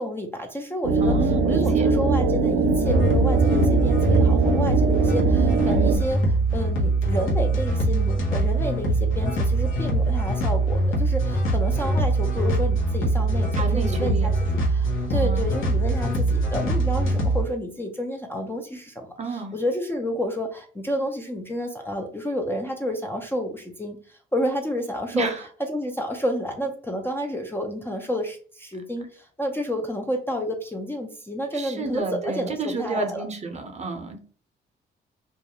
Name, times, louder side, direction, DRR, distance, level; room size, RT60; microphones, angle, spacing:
voice 1, 0.0-6.2 6.5-14.3 14.7-25.3 25.6-33.3, equal, 10° left, 3 dB, 0.4 m, -30 dB
sound 1, 0.8-6.0, right 4 dB, 85° right, 0.4 m, -21 dB
voice 2, 1.0-2.0 5.6-6.0 13.6-14.4 15.1-15.5 19.2-19.5 25.1-25.4 31.5-34.2, right 3 dB, 35° right, 5 dB, 0.6 m, -31 dB
sound 2, 2.8-17.4, right 2 dB, 90° left, 0.8 m, -23 dB
2.3 x 2.1 x 2.8 m, 0.43 s
cardioid pair, 90°, 20 cm